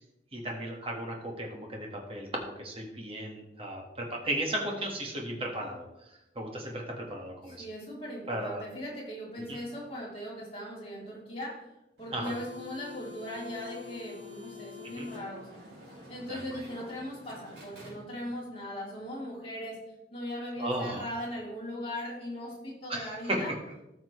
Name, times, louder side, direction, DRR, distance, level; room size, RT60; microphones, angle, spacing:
voice 1, 0.3-5.9 6.4-7.7 8.3-8.6 9.5-9.6 12.1-12.3 15.0-15.1 16.3-16.9 20.6-21.0 22.9-23.6, right 1 dB, 35° right, 0 dB, 1.7 m, -35 dB
voice 2, 7.5-11.6 12.0-15.5 16.1-19.8 20.1-23.5, equal, 30° left, -5 dB, 3.3 m, -39 dB
sound 1, 12.0-18.4, left 4 dB, 70° right, 3.3 m, -48 dB
14.0 x 6.0 x 3.2 m, 0.89 s
head